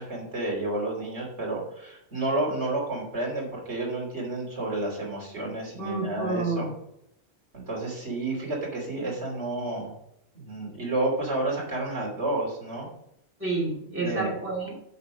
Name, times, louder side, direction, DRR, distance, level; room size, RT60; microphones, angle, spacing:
voice 1, 0.0-6.7 7.5-9.9 10.3-12.9 14.0-14.3, right 2 dB, 90° right, -3 dB, 3.3 m, -30 dB
voice 2, 5.8-6.7 13.4-14.7, right 3 dB, 10° right, -4 dB, 2.5 m, -29 dB
7.1 x 6.7 x 4.9 m, 0.76 s
omnidirectional pair, 1.1 m